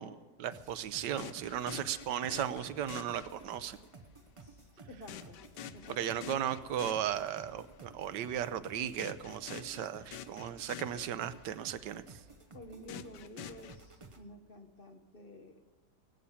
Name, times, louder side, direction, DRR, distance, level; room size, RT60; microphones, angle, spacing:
voice 1, 0.0-3.8 5.9-12.2, right 10 dB, 90° right, 13 dB, 1.3 m, -36 dB
sound 1, 0.5-14.2, right 3 dB, 25° right, 0.7 m, -55 dB
sound 2, 1.2-3.8 5.1-7.7 9.0-11.6 12.9-13.8, left 9 dB, 80° left, 1.3 m, -48 dB
voice 2, 4.4-5.4 5.7-6.0 12.5-15.6, left 1 dB, 40° left, 5 dB, 1.1 m, -51 dB
18.5 x 8.7 x 7.0 m, 1.4 s
omnidirectional pair, 1.8 m